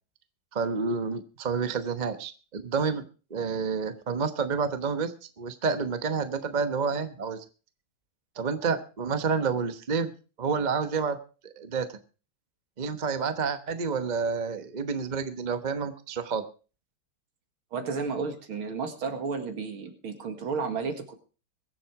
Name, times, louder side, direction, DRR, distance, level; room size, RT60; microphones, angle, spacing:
voice 1, 0.5-3.0 3.3-7.4 8.4-10.1 10.4-11.2 11.6-12.0 12.8-16.4, right 5 dB, 35° right, 9 dB, 0.8 m, -29 dB
voice 2, 17.7-21.1, right 5 dB, 70° right, 6 dB, 2.8 m, -32 dB
22.5 x 7.7 x 4.8 m, 0.36 s
omnidirectional pair, 2.4 m